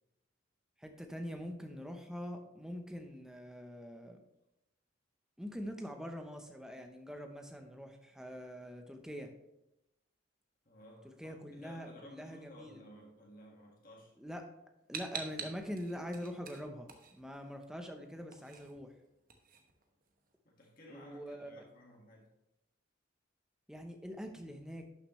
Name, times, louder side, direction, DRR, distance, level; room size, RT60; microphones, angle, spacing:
voice 1, 0.8-4.2 5.4-9.3 11.0-12.8 14.2-14.5 14.9-18.9 20.9-21.5 23.7-24.9, equal, 5° right, 4 dB, 0.8 m, -44 dB
voice 2, 10.7-14.1 20.5-22.3, equal, 45° left, -2 dB, 1.8 m, -56 dB
sound 1, 14.9-17.6 17.9-20.3, right 6 dB, 45° right, 1.0 m, -46 dB
11.5 x 6.6 x 3.2 m, 0.90 s
head